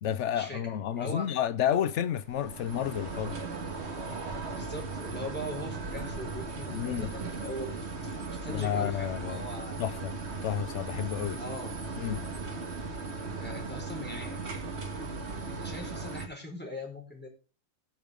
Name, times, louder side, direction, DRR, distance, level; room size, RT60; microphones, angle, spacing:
voice 1, 0.0-3.4 6.7-7.1 8.5-9.4 9.8-10.2 10.4-11.4 12.0-12.3, left 9 dB, 90° left, 0.6 m, -30 dB
voice 2, 0.9-1.4 4.5-7.8 8.4-9.8 11.3-11.8 13.4-14.4 15.5-17.3, left 1 dB, 5° left, 4.4 m, -40 dB
sound 1, 2.2-16.3, right 3 dB, 35° right, 1.9 m, -37 dB
20.0 x 6.7 x 3.6 m
omnidirectional pair, 2.0 m